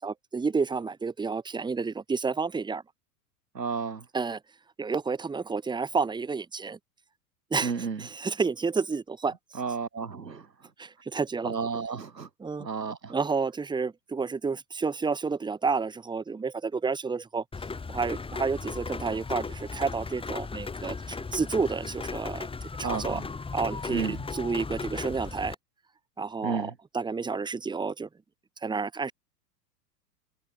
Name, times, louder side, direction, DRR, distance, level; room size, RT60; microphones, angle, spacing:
voice 1, 0.0-2.8 4.1-4.4 4.8-6.8 7.5-7.7 8.0-9.3 10.8-11.5 12.4-12.7 13.1-17.4 17.9-22.5 22.8-23.2 23.5-25.5 26.2-28.1 28.6-29.1, right 4 dB, 10° right, 1.4 m, -30 dB
voice 2, 3.5-4.1 7.6-8.0 9.5-10.5 11.4-12.3 12.6-13.1 22.8-23.3 23.9-24.2 26.4-26.8, right 5 dB, 85° right, 7.9 m, -32 dB
Rain, 17.5-25.5, left 4 dB, 10° left, 2.4 m, -36 dB
figure-of-eight pair, 95°, 48 cm